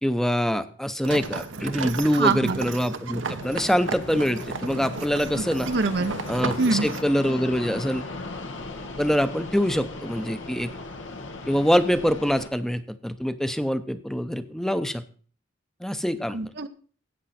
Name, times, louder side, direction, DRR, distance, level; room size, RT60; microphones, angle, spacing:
voice 1, 0.0-5.7 6.3-8.0 9.0-10.7 11.5-15.0 15.8-16.4, equal, ahead, 11 dB, 0.7 m, -25 dB
sound 1, 1.0-7.0, right 4 dB, 80° right, 1.0 m, -34 dB
voice 2, 2.1-2.6 5.4-6.2 6.6-6.9 16.3-16.7, right 4 dB, 60° right, 9 dB, 0.7 m, -25 dB
Fixed-wing aircraft airplane, 3.4-12.5, left 2 dB, 90° left, 1.6 m, -37 dB
13.5 x 8.8 x 4.2 m, 0.43 s
head